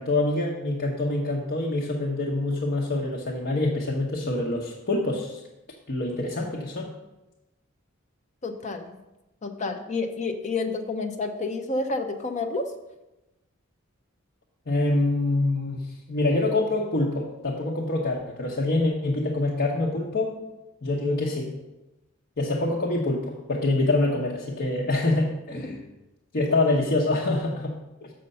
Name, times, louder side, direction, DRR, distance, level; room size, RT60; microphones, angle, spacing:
voice 1, 0.0-5.4 5.9-6.9 14.7-15.8 16.1-20.4 20.8-21.5 22.4-25.8 26.3-27.7 28.0-28.1, left 2 dB, 55° left, -3 dB, 1.0 m, -25 dB
voice 2, 8.4-9.0 9.4-12.7, left 3 dB, 35° left, 6 dB, 0.6 m, -29 dB
6.6 x 6.5 x 5.4 m, 0.99 s
head